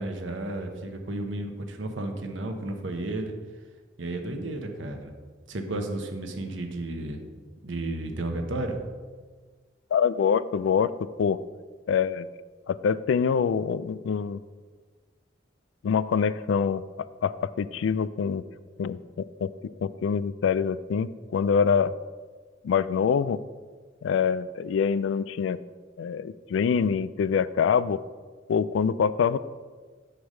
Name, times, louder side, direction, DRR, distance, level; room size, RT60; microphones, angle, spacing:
voice 1, 0.0-3.3 4.0-5.1 5.5-7.2 7.6-8.8, right 2 dB, 90° right, 5 dB, 1.0 m, -33 dB
voice 2, 9.9-10.9 11.2-11.4 11.9-12.3 12.7-14.4 15.8-16.8 17.2-18.4 18.8-19.5 19.8-21.9 22.6-23.4 24.0-25.6 26.0-28.0 28.5-29.4, left 6 dB, 85° left, 16 dB, 0.3 m, -25 dB
7.9 x 3.4 x 6.4 m, 1.5 s
head